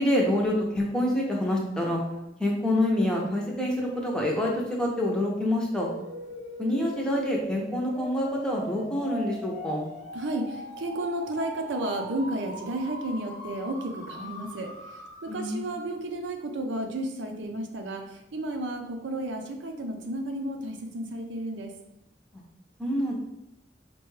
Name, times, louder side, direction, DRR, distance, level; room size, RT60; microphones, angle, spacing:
voice 1, 0.0-2.0 2.4-5.9 6.6-9.8 15.3-15.6 22.3-22.4 22.8-23.1, left 1 dB, 5° left, -2 dB, 0.6 m, -26 dB
sound 1, 5.7-15.6, right 1 dB, 40° right, 0.7 m, -41 dB
voice 2, 10.1-21.7, right 1 dB, 90° right, 4 dB, 0.6 m, -33 dB
4.4 x 2.2 x 3.2 m, 0.90 s
head